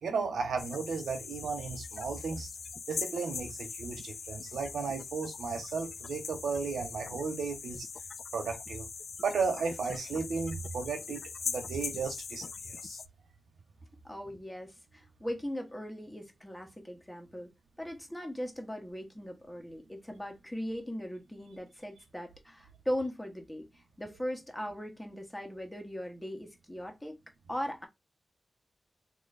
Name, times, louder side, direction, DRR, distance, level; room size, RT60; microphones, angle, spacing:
voice 1, 0.0-2.5 2.9-7.9 8.3-8.9 9.2-13.0, right 5 dB, 90° right, 1.1 m, -34 dB
sound 1, 0.6-13.1, left 5 dB, 70° left, 0.3 m, -41 dB
voice 2, 14.0-17.5 17.8-27.2 27.5-27.9, equal, 15° left, 1.3 m, -39 dB
3.1 x 2.9 x 4.1 m
cardioid pair, 60°, 0 cm